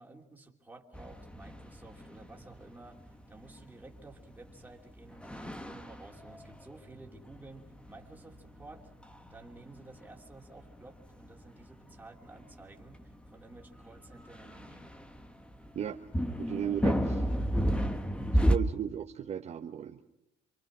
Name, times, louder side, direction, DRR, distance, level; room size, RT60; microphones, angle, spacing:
voice 1, 0.0-8.9 9.3-14.9 17.7-17.9, right 2 dB, 10° right, 1 dB, 3.0 m, -53 dB
sound 1, 0.9-18.6, equal, 5° left, 1.4 m, -34 dB
voice 2, 16.4-17.3 18.5-20.0, right 9 dB, 40° right, 3 dB, 1.1 m, -35 dB
27.5 x 24.0 x 6.2 m, 0.79 s
cardioid pair, 110°, 16 cm